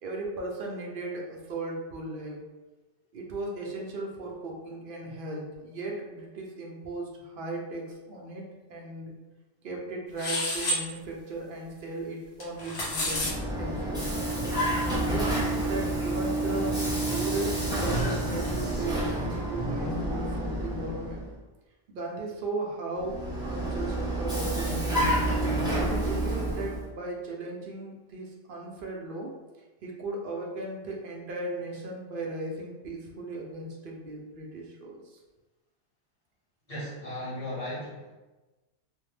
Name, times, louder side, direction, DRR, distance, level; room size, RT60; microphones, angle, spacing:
voice 1, 0.0-2.4 3.1-9.1 9.6-14.0 15.1-21.3 21.9-25.1 25.9-29.3 29.8-35.2, right 2 dB, 60° right, -1 dB, 0.6 m, -36 dB
sound 1, 10.2-10.8 12.4-13.3, left 1 dB, 70° left, 1.1 m, -29 dB
Vehicle, 12.8-21.3 23.0-26.9, right 1 dB, 5° right, 0.5 m, -29 dB
voice 2, 36.7-38.2, left 1 dB, 35° left, -8 dB, 1.0 m, -36 dB
2.6 x 2.1 x 3.1 m, 1.1 s
omnidirectional pair, 1.2 m